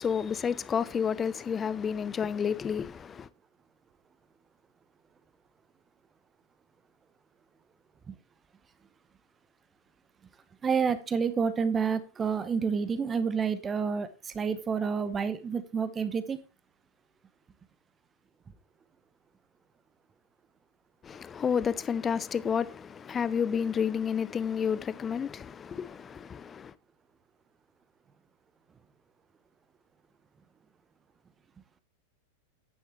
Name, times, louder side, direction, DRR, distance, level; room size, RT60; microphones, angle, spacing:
voice 1, 0.0-3.3 21.0-26.7, left 7 dB, 20° left, 0.5 m, -30 dB
voice 2, 10.6-16.4, right 6 dB, 20° right, 0.9 m, -29 dB
10.0 x 9.8 x 3.2 m
figure-of-eight pair, 90°, 0 cm